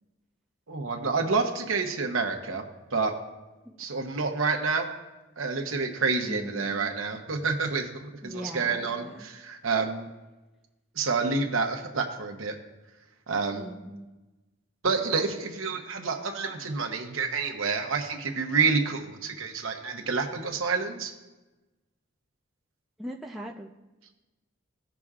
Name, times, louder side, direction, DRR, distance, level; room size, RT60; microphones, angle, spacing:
voice 1, 0.7-2.6 2.9-3.2 3.8-4.9 5.4-10.1 10.9-12.6 13.3-13.7 14.8-21.1, right 4 dB, 70° right, 3 dB, 1.0 m, -28 dB
voice 2, 6.3-6.9 8.2-9.3 13.5-14.1 23.0-23.7, equal, ahead, -1 dB, 0.3 m, -40 dB
16.0 x 6.0 x 2.4 m, 1.1 s
head